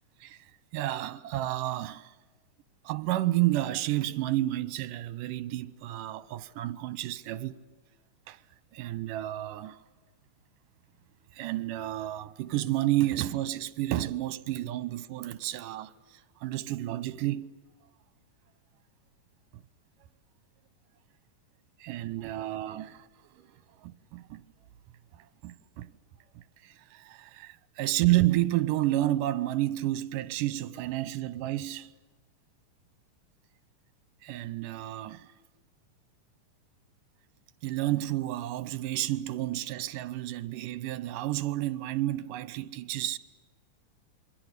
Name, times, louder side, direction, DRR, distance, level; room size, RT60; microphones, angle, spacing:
voice 1, 0.2-2.1 2.8-7.6 8.3-8.4 8.7-9.8 11.3-17.6 19.5-19.6 21.8-23.1 23.3-23.5 23.8-24.4 25.4-25.9 26.4-31.9 34.2-35.3 37.6-43.2, right 15 dB, 80° right, 2.5 m, -31 dB
28.0 x 23.0 x 8.2 m
omnidirectional pair, 3.8 m